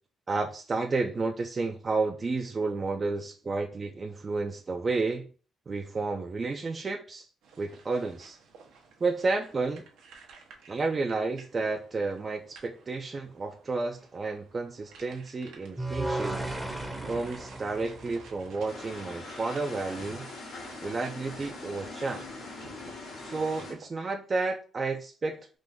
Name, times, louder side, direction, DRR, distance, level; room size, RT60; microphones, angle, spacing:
voice 1, 0.3-5.3 5.7-7.2 7.6-8.4 9.0-9.8 10.7-16.6 17.1-20.3 20.8-22.2 23.2-25.6, right 3 dB, 35° right, 0.4 m, -31 dB
sound 1, 7.4-23.9, right 4 dB, 90° right, 0.9 m, -53 dB
sound 2, 15.8-19.0, right 2 dB, 5° right, 0.7 m, -35 dB
sound 3, 18.7-23.7, left 3 dB, 70° left, 1.5 m, -42 dB
3.7 x 2.5 x 3.6 m
cardioid pair, 90°, 0 cm